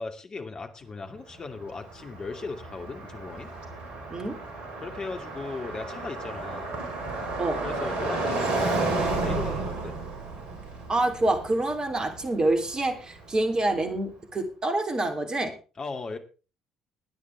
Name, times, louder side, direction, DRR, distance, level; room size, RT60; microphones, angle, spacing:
voice 1, 0.0-3.5 4.8-6.8 7.6-10.0 15.8-16.2, left 4 dB, 35° left, 5 dB, 2.5 m, -38 dB
Car passing by, 1.3-13.3, right 2 dB, 55° right, 4.3 m, -32 dB
voice 2, 10.9-15.5, right 2 dB, 30° right, 7 dB, 3.6 m, -27 dB
21.5 x 10.0 x 3.6 m, 0.34 s
figure-of-eight pair, 55°, 2 cm